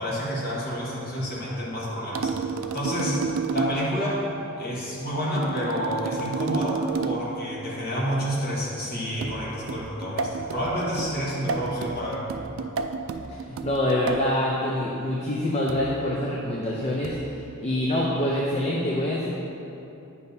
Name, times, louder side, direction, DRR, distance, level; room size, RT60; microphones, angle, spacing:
voice 1, 0.0-2.3 2.7-3.2 3.5-4.2 4.6-12.2, equal, 45° left, -6 dB, 1.4 m, -29 dB
sound 1, 2.1-3.9 5.4-7.4 9.2-14.3 15.7-16.0 17.0-17.4, right 5 dB, 70° right, 0.3 m, -31 dB
voice 2, 13.3-17.2 17.6-19.3, left 1 dB, 30° left, -4 dB, 0.5 m, -25 dB
8.6 x 5.4 x 2.7 m, 2.9 s
head